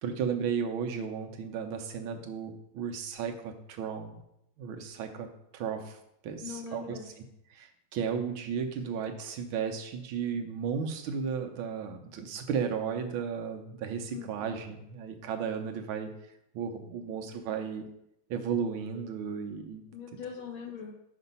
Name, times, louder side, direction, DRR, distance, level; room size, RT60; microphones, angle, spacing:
voice 1, 0.0-4.2 4.6-5.3 5.5-6.0 6.2-7.0 7.5-16.1 16.5-17.9 18.3-19.8, right 6 dB, 80° right, 5 dB, 1.6 m, -34 dB
voice 2, 6.4-7.2 14.1-14.3 19.9-21.1, left 6 dB, 75° left, 2 dB, 1.6 m, -41 dB
6.0 x 5.3 x 5.4 m, 0.78 s
omnidirectional pair, 2.3 m